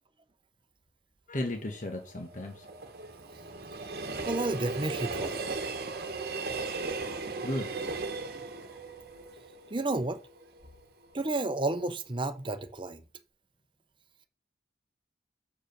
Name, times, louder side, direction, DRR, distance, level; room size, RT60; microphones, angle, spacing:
voice 1, 1.3-2.7 7.4-8.0, left 1 dB, 45° left, 1.4 m, -35 dB
Train, 1.6-10.7 11.0-11.1, right 3 dB, 60° right, 1.2 m, -37 dB
voice 2, 4.3-5.4 9.7-10.2 11.1-13.0, right 2 dB, 30° right, 0.8 m, -31 dB
7.4 x 4.9 x 6.7 m
head